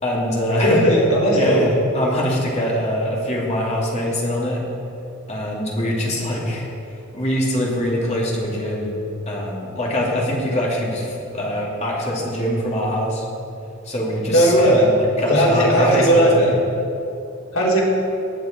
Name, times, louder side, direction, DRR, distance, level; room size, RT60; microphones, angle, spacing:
voice 1, 0.0-0.8 1.3-4.6 5.3-6.7 7.1-8.9 9.3-13.2 13.8-16.5, equal, 35° left, -3 dB, 2.6 m, -23 dB
voice 2, 0.6-1.7 14.3-14.9 15.3-16.5 17.5-17.8, equal, 80° left, -5 dB, 3.5 m, -16 dB
19.5 x 7.8 x 4.4 m, 2.7 s
head